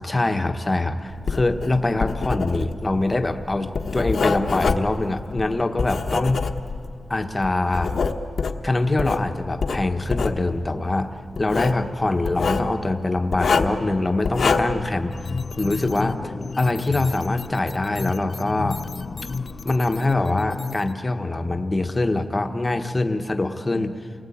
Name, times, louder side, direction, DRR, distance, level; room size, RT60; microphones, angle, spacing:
voice 1, 0.0-6.4 7.1-8.0 8.6-15.1 15.5-18.8 19.6-24.0, left 2 dB, 25° left, 6 dB, 1.2 m, -24 dB
Writing, 1.2-7.0 7.4-9.2 9.6-10.4 11.4-11.8 12.2-12.7 13.3-13.8 14.2-14.8, left 4 dB, 75° left, 1.2 m, -25 dB
sound 1, 15.1-20.9, left 4 dB, 50° left, 0.6 m, -32 dB
28.5 x 19.5 x 8.6 m, 2.6 s
wide cardioid pair, 150°, 0 cm